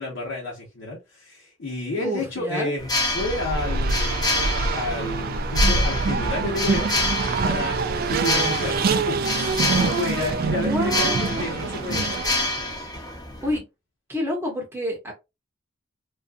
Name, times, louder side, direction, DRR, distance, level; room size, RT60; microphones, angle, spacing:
voice 1, 0.0-6.9 7.4-9.2 9.5-12.2, left 2 dB, 70° left, 0.9 m, -30 dB
voice 2, 2.0-2.7 10.6-11.5 13.4-13.6 14.1-15.1, equal, 10° right, 0.8 m, -28 dB
sound 1, 2.8-13.6, left 2 dB, 20° left, 0.6 m, -28 dB
Race car auto racing, 3.1-12.7, right 4 dB, 50° right, 0.3 m, -25 dB
2.5 x 2.3 x 2.5 m
head